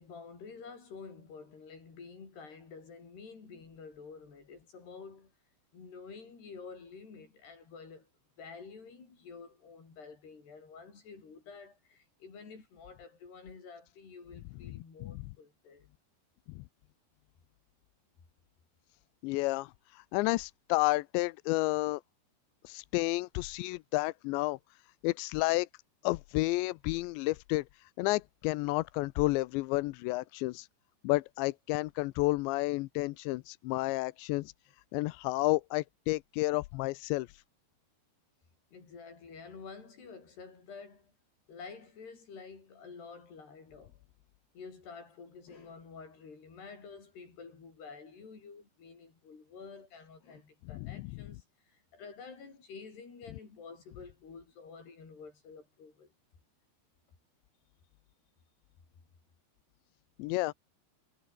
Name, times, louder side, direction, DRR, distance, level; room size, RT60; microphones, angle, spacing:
voice 1, 0.0-5.3 5.7-8.1 8.4-15.9 38.7-41.1 41.5-44.0 44.6-56.1, left 5 dB, 65° left, 8.7 m, -49 dB
voice 2, 19.2-22.0 22.6-24.6 25.0-25.7 26.0-30.7 31.0-34.5 34.9-37.4 50.8-51.1 60.2-60.5, left 21 dB, 90° left, 3.0 m, -31 dB
omnidirectional pair, 5.0 m